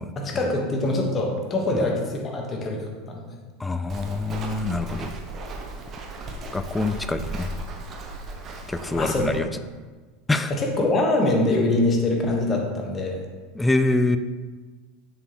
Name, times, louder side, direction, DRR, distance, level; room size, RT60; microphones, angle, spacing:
voice 1, 0.2-3.3 8.9-9.3 10.8-13.2, left 2 dB, 30° left, 1 dB, 1.4 m, -24 dB
voice 2, 3.6-5.1 6.5-7.5 8.7-9.5 10.3-10.5 13.5-14.2, left 2 dB, 10° left, 10 dB, 0.4 m, -25 dB
Walk footsteps, 3.9-9.4, right 2 dB, 35° right, 0.8 m, -36 dB
6.1 x 6.1 x 3.1 m, 1.3 s
figure-of-eight pair, 80°, 0 cm